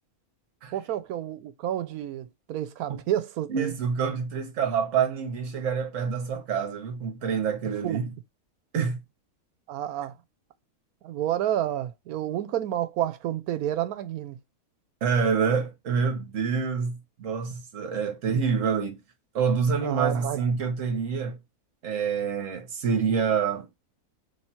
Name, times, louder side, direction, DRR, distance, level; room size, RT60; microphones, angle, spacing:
voice 1, 0.7-3.7 7.8-8.0 9.7-10.1 11.0-14.4 19.8-20.4, right 12 dB, 85° right, 1.1 m, -30 dB
voice 2, 3.5-8.1 8.7-9.0 15.0-19.0 19.3-21.4 21.8-23.8, right 6 dB, 60° right, 1.3 m, -27 dB
3.3 x 3.1 x 4.2 m
omnidirectional pair, 1.5 m